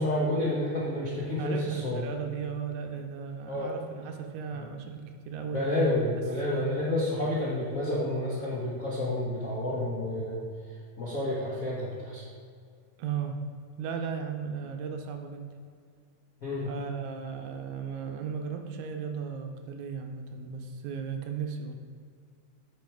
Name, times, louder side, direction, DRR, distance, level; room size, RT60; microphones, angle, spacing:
voice 1, 0.0-2.0 3.5-3.7 5.5-10.4 11.0-12.2 16.4-16.7, left 1 dB, 55° left, -6 dB, 0.9 m, -29 dB
voice 2, 1.4-6.7 13.0-13.4 13.8-15.5 16.7-21.8, right 6 dB, 75° right, 5 dB, 2.0 m, -36 dB
9.1 x 5.2 x 4.7 m, 2.2 s
omnidirectional pair, 3.6 m